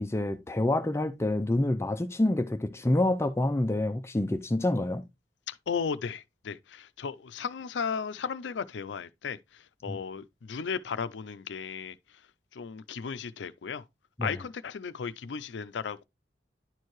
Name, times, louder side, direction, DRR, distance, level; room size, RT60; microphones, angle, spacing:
voice 1, 0.0-5.0 9.9-10.0 14.2-14.4, left 1 dB, 15° left, 0.4 m, -27 dB
voice 2, 5.5-12.0 12.5-13.8 14.2-16.0, left 6 dB, 85° left, 0.5 m, -35 dB
10.5 x 4.5 x 3.1 m
head